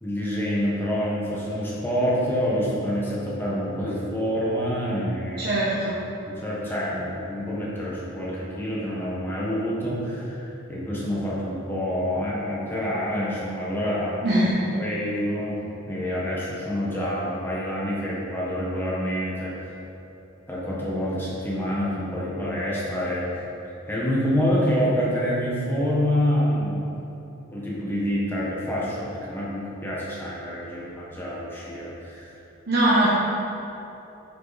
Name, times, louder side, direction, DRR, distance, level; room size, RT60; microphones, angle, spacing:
voice 1, 0.0-5.5 6.2-14.4 14.8-15.6 15.9-19.7 20.5-23.3 23.9-26.8 27.5-32.3, equal, 10° left, -7 dB, 1.5 m, -27 dB
voice 2, 5.4-6.0 14.2-14.5 32.7-33.1, right 1 dB, 50° right, -9 dB, 1.4 m, -21 dB
9.0 x 6.5 x 4.2 m, 3.0 s
head